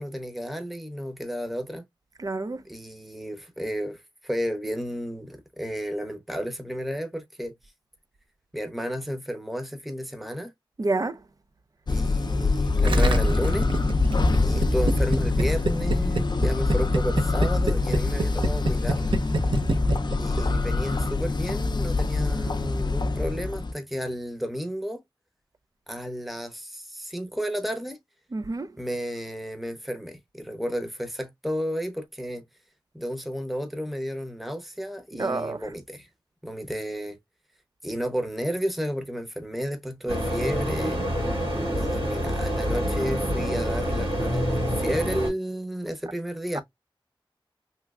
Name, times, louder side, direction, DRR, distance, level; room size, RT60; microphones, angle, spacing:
voice 1, 0.0-1.8 2.6-7.5 8.5-10.5 11.9-13.7 14.4-19.2 20.2-25.0 25.9-28.0 28.8-32.4 32.9-36.1 36.4-37.2 37.8-41.0 41.7-46.6, equal, ahead, 0.8 m, -32 dB
voice 2, 2.2-2.6 10.8-11.2 28.3-28.7 35.1-35.6, right 3 dB, 40° right, 0.4 m, -28 dB
sound 1, 11.9-23.7, left 3 dB, 55° left, 0.5 m, -25 dB
Gurgling, 12.8-20.7, right 2 dB, 65° right, 0.8 m, -26 dB
sound 2, 40.1-45.3, equal, 85° right, 1.9 m, -27 dB
3.2 x 3.1 x 2.3 m
wide cardioid pair, 65°, 9 cm